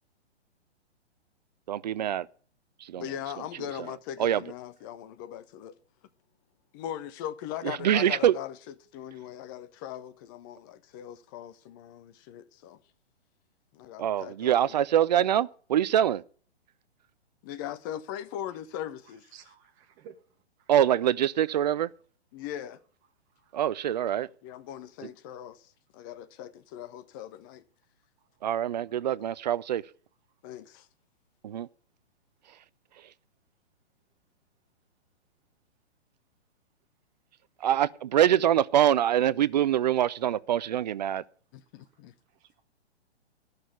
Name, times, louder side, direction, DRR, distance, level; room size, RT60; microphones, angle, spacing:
voice 1, 1.7-2.3 2.8-3.1 4.2-4.4 7.6-8.4 14.0-16.2 20.7-21.9 23.5-24.3 25.0-25.1 28.4-29.8 31.4-31.7 37.6-41.2, right 10 dB, 40° right, 0.5 m, -24 dB
voice 2, 3.0-5.7 6.7-12.8 13.7-14.7 17.4-19.5 22.3-22.8 24.4-27.6 30.4-30.9 41.5-42.1, left 11 dB, 20° left, 0.5 m, -40 dB
voice 3, 19.3-20.1 23.4-23.5 37.6-37.7 42.4-42.6, right 8 dB, 25° right, 1.2 m, -52 dB
12.5 x 6.6 x 8.1 m
figure-of-eight pair, 120°, 33 cm